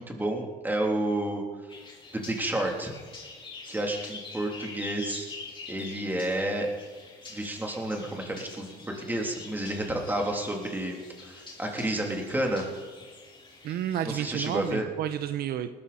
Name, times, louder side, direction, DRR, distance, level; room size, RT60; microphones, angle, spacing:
voice 1, 0.0-1.4 2.1-2.9 3.7-5.3 5.7-6.7 7.3-8.7 9.0-12.6 14.0-14.9, right 1 dB, 10° right, 0 dB, 3.1 m, -30 dB
sound 1, 1.7-14.7, left 3 dB, 30° left, 4.0 m, -46 dB
voice 2, 13.6-15.7, right 10 dB, 65° right, 11 dB, 0.7 m, -31 dB
20.0 x 13.0 x 4.3 m, 1.4 s
cardioid pair, 110°, 17 cm